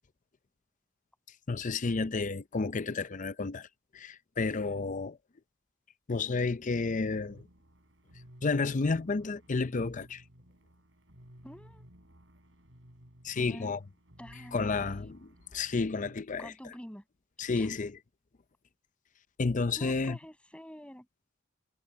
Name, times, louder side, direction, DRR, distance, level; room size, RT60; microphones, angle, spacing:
voice 1, 1.5-3.7 3.9-5.2 6.1-7.4 8.4-10.2 13.2-13.8 14.5-16.5 17.4-17.9 19.4-20.2, left 4 dB, 40° left, 0.6 m, -31 dB
sound 1, 7.3-16.2, equal, 70° right, 6.2 m, -55 dB
voice 2, 11.4-11.9 13.3-13.7 14.2-14.9 16.4-17.0 17.6-17.7 19.8-21.1, equal, 5° left, 6.0 m, -47 dB
head